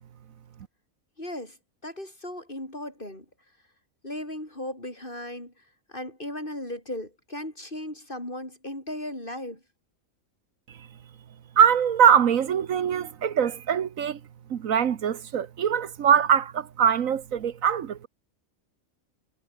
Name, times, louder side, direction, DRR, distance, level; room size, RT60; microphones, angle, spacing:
voice 1, 1.2-1.6 1.8-3.2 4.0-5.5 5.9-9.6, left 1 dB, 35° left, 8.0 m, -36 dB
voice 2, 11.6-14.2 14.5-18.1, right 8 dB, 75° right, 1.4 m, -22 dB
omnidirectional pair, 1.4 m